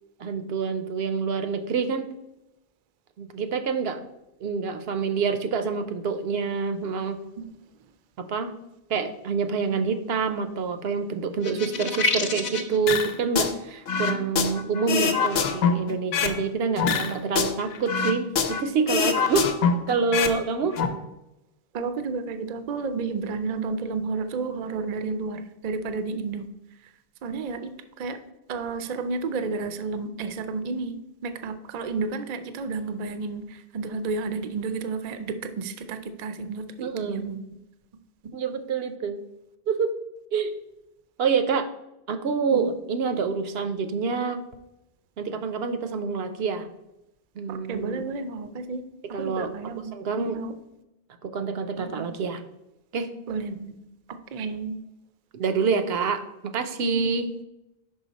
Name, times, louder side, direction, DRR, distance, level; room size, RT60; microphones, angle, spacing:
voice 1, 0.2-2.1 3.2-4.0 4.4-7.2 8.2-8.5 8.9-19.5 19.9-20.8 36.8-37.3 38.3-39.2 39.7-39.9 40.3-40.6 41.2-41.7 42.1-44.4 45.2-46.7 47.4-48.0 49.1-49.5 49.9-50.4 51.2-52.4 52.9-53.1 55.3-56.2 56.5-57.3, right 5 dB, 75° right, 9 dB, 0.8 m, -27 dB
sound 1, 11.4-12.8, left 3 dB, 50° left, 0.7 m, -27 dB
sound 2, 12.9-13.5 13.9-16.4 16.8-18.6 18.9-20.4 20.6-20.9, left 6 dB, 75° left, 0.9 m, -24 dB
voice 2, 21.7-26.5 26.8-26.9 27.2-28.2 28.5-31.0 31.2-37.4 42.5-42.7 47.5-48.8 49.1-49.9 50.2-50.5 51.8-52.1 53.3-53.7 54.3-54.8 57.0-57.2, right 4 dB, 50° right, 9 dB, 0.5 m, -31 dB
5.6 x 5.2 x 4.0 m, 0.91 s
omnidirectional pair, 1.0 m